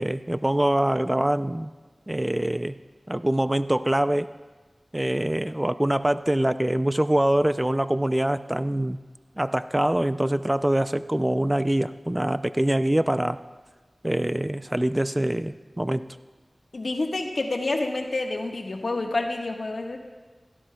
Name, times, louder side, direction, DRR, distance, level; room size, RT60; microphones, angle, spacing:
voice 1, 0.0-1.7 2.1-2.8 3.1-4.3 4.9-9.0 9.4-13.4 14.0-16.1, right 1 dB, 20° right, 11 dB, 0.4 m, -24 dB
voice 2, 16.7-20.0, left 2 dB, 80° left, 2 dB, 1.4 m, -28 dB
25.0 x 17.0 x 2.3 m, 1.3 s
wide cardioid pair, 55°, 0 cm